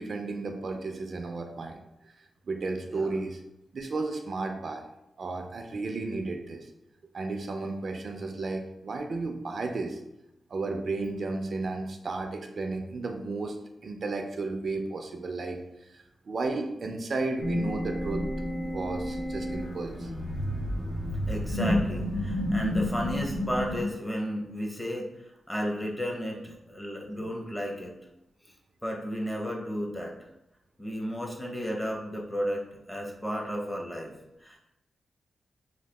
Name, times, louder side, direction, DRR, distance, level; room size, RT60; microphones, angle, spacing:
voice 1, 0.0-2.1 2.5-3.4 3.7-4.8 5.2-6.7 7.1-10.0 10.5-13.6 13.8-18.3 18.6-20.1 20.9-21.0 27.2-27.3, right 3 dB, 55° right, 4 dB, 0.3 m, -33 dB
sound 1, 17.4-23.8, left 1 dB, 75° left, 0.9 m, -30 dB
voice 2, 21.3-27.9 28.5-28.6 28.8-30.2 30.8-34.1 34.4-34.6, equal, 10° left, -1 dB, 0.6 m, -33 dB
2.8 x 2.3 x 3.3 m, 0.86 s
wide cardioid pair, 110°, 0 cm